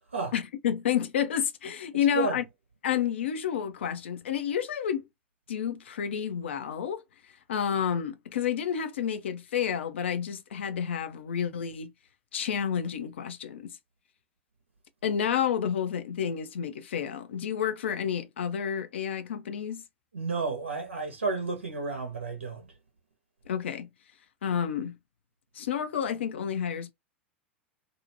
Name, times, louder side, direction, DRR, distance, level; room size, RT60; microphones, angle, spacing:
voice 1, 0.3-2.4 2.8-5.0 5.5-7.0 7.5-11.9 12.3-13.8 15.0-19.8 23.5-23.9 24.4-25.0 25.5-26.9, left 8 dB, 70° left, 0.5 m, -30 dB
voice 2, 20.1-22.7, right 4 dB, 85° right, 0.9 m, -31 dB
2.7 x 2.1 x 2.7 m
figure-of-eight pair, 90°, 7 cm